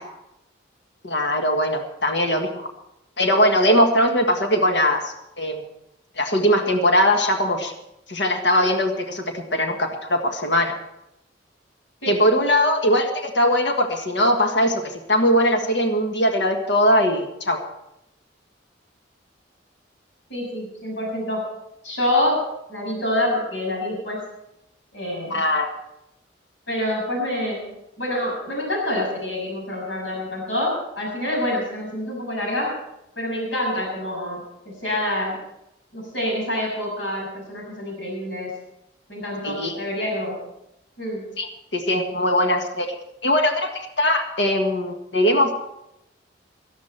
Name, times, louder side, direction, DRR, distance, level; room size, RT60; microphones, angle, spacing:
voice 1, 1.0-2.7 3.2-5.6 6.2-7.7 8.1-10.8 12.1-17.6 25.3-25.7 39.4-39.8 41.4-41.5 41.7-42.9 43.2-45.5, equal, 65° left, 3 dB, 1.7 m, -20 dB
voice 2, 20.3-21.4 21.8-22.4 22.7-24.2 24.9-25.4 26.7-27.7 28.0-32.8 33.1-35.4 35.9-38.5 39.1-40.4 41.0-41.3, left 1 dB, 85° left, -1 dB, 6.6 m, -26 dB
17.5 x 12.5 x 4.5 m, 0.85 s
head